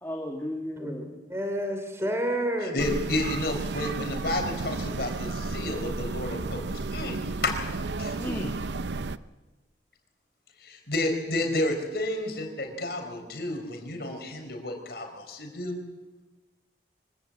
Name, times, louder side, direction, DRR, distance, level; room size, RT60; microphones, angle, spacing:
voice 1, 0.0-1.1 8.2-8.6, left 1 dB, 15° left, 1 dB, 1.7 m, -34 dB
voice 2, 0.8-2.8, right 1 dB, 15° right, 5 dB, 3.0 m, -30 dB
voice 3, 2.6-6.6 6.9-7.5 8.0-8.4 10.6-15.8, left 2 dB, 65° left, 4 dB, 4.6 m, -31 dB
sound 1, 2.8-9.2, right 3 dB, 85° right, 0.7 m, -33 dB
25.0 x 16.0 x 8.8 m, 1.2 s
head